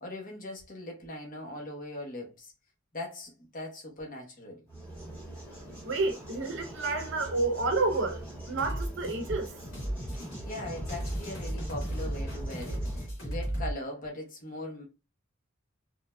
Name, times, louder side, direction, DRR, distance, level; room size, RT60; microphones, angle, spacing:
voice 1, 0.0-2.5 2.9-4.7 10.1-14.8, left 1 dB, 40° left, 0.9 m, -40 dB
sound 1, 4.7-13.1, right 1 dB, 10° left, 1.2 m, -44 dB
voice 2, 5.8-8.2 8.5-9.5, right 3 dB, 60° right, 0.7 m, -29 dB
sound 2, 8.6-13.7, right 1 dB, 65° left, 1.5 m, -35 dB
3.1 x 2.6 x 2.2 m
head